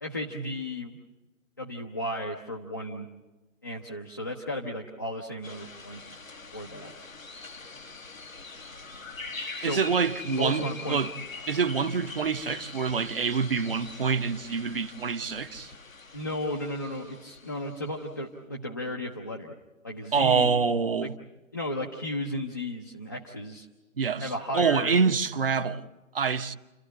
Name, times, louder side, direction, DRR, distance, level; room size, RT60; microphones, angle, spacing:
voice 1, 0.0-0.9 1.6-3.1 3.6-6.2 6.5-6.9 9.6-9.8 10.3-11.0 16.1-19.5 19.8-20.5 21.0-21.1 21.5-23.7 24.2-24.9, left 1 dB, 15° left, 0.7 m, -34 dB
sound 1, 5.4-18.0, left 3 dB, 75° left, 1.6 m, -43 dB
voice 2, 9.6-11.1 11.5-15.7 20.1-21.1 24.0-25.8 26.1-26.5, right 5 dB, 45° right, 1.0 m, -26 dB
29.5 x 13.0 x 9.9 m
figure-of-eight pair, 155°, 40 cm